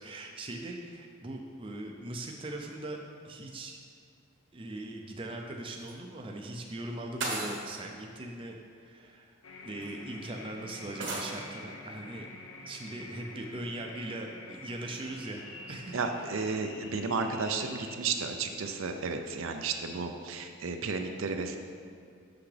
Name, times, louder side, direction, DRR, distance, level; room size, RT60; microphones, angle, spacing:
voice 1, 0.0-3.8 4.5-9.4 9.6-12.3 12.7-16.0 16.3-16.5, right 1 dB, 25° right, 2 dB, 0.4 m, -40 dB
sound 1, 5.7-5.9 7.2-7.8 9.0-9.1 9.8-9.9 11.0-11.3, right 2 dB, 55° right, 1.1 m, -35 dB
sound 2, 9.4-18.0, left 2 dB, 75° left, 0.6 m, -47 dB
voice 2, 15.9-21.6, right 4 dB, 75° right, 5 dB, 0.5 m, -33 dB
7.0 x 5.8 x 3.3 m, 2.2 s
head